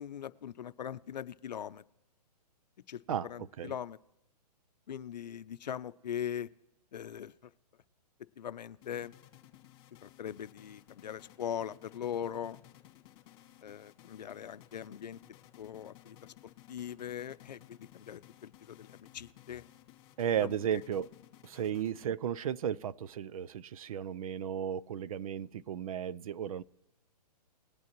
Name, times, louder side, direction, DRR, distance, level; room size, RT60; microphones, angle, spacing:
voice 1, 0.0-1.8 2.9-4.0 4.9-6.5 6.9-7.3 8.4-9.1 10.0-12.6 13.6-15.2 15.6-16.2 16.7-19.6 20.4-20.5 21.7-21.8, left 9 dB, 85° left, 0.6 m, -41 dB
sound 1, 8.8-22.4, left 14 dB, 35° left, 1.9 m, -57 dB
voice 2, 20.2-21.1 21.4-26.6, right 9 dB, 60° right, 0.5 m, -34 dB
20.5 x 8.4 x 3.0 m
hypercardioid pair, 145°, 21 cm